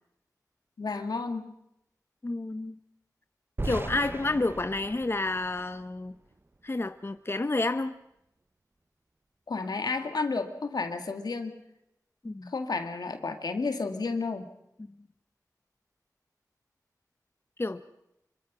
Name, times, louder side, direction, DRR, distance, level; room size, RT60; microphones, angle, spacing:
voice 1, 0.8-1.5 9.5-11.5 12.5-14.5, left 4 dB, 80° left, 7 dB, 2.1 m, -31 dB
voice 2, 2.2-2.7 3.6-6.1 6.6-7.9 12.2-12.5 17.6-17.8, left 2 dB, 35° left, 10 dB, 0.9 m, -30 dB
sound 1, 3.6-6.6, right 2 dB, 35° right, 0.9 m, -38 dB
25.0 x 24.0 x 6.2 m, 0.83 s
wide cardioid pair, 55°, 7 cm